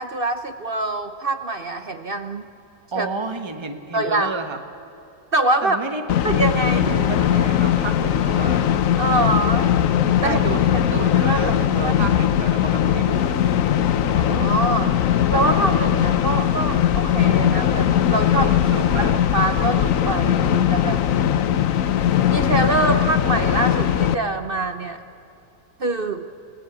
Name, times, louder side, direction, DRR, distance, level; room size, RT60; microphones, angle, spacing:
voice 1, 0.0-2.4 3.0-3.1 3.9-4.3 5.3-5.8 6.2-6.9 9.0-9.8 10.2-10.4 10.7-10.9 11.1-11.5 11.8-11.9 14.1-15.0 15.3-18.5 19.0-19.1 19.3-21.0 22.3-25.0 25.8-26.3, right 2 dB, 50° right, 8 dB, 0.7 m, -24 dB
voice 2, 2.9-4.6 5.6-6.1 6.6-8.7 10.2-10.6 10.9-13.5 18.3-19.1, right 4 dB, 15° right, 6 dB, 1.3 m, -31 dB
sound 1, 6.1-24.2, left 10 dB, 60° left, 1.0 m, -19 dB
30.0 x 17.0 x 8.2 m, 3.0 s
omnidirectional pair, 1.9 m